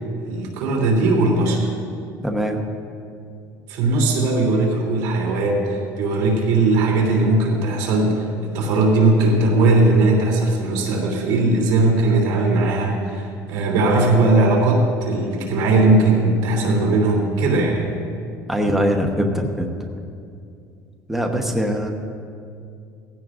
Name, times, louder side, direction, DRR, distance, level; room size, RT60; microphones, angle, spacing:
voice 1, 0.2-1.6 3.7-17.9, right 2 dB, 85° right, -1 dB, 3.1 m, -18 dB
voice 2, 2.2-2.6 18.5-19.7 21.1-21.9, equal, 5° right, 2 dB, 1.0 m, -22 dB
19.0 x 15.5 x 2.6 m, 2.4 s
cardioid pair, 130°, 7 cm